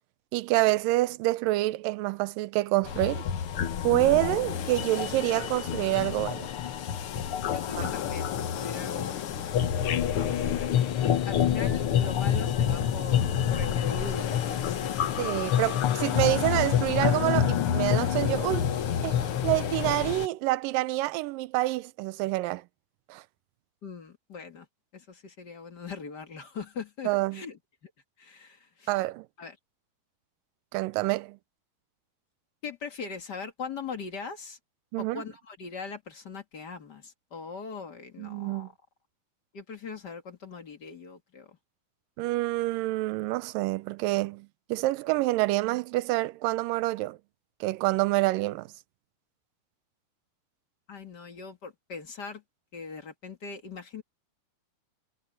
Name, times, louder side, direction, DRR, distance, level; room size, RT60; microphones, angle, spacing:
voice 1, 0.3-3.3 3.8-6.5 7.8-7.9 15.2-18.7 19.0-22.6 23.1-23.2 27.1-27.4 28.9-29.3 30.7-31.4 34.9-35.2 38.2-38.7 42.2-47.2 47.6-48.7, right 18 dB, 80° right, 2.3 m, -27 dB
sound 1, 2.8-20.3, left 9 dB, 85° left, 1.2 m, -28 dB
voice 2, 7.5-9.3 10.2-10.9 11.2-13.2 13.5-15.2 23.8-24.7 24.9-27.9 28.2-28.9 29.4-29.6 32.6-34.6 35.0-38.7 39.5-41.5 50.9-52.4 52.7-54.0, left 5 dB, 40° left, 1.6 m, -40 dB
omnidirectional pair, 4.1 m